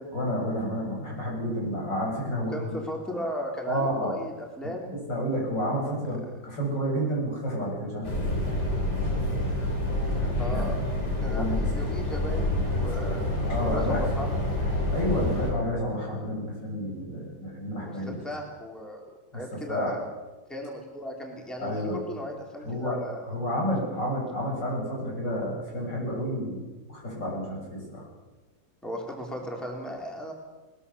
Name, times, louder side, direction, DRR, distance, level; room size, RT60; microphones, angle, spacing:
voice 1, 0.1-2.8 3.7-4.1 4.9-8.2 10.5-10.7 11.2-11.9 13.5-14.3 14.9-18.2 19.3-19.4 19.7-19.9 21.6-22.0 22.6-23.0 23.2-26.6 26.9-28.1, equal, 75° left, -2 dB, 8.4 m, -30 dB
voice 2, 2.5-4.9 10.4-10.8 11.2-14.3 17.8-19.1 19.3-20.0 20.5-23.3 28.8-30.3, equal, ahead, 0 dB, 3.6 m, -36 dB
sound 1, 8.0-15.5, left 1 dB, 35° left, 4.5 m, -27 dB
22.0 x 20.5 x 7.1 m, 1.2 s
omnidirectional pair, 2.0 m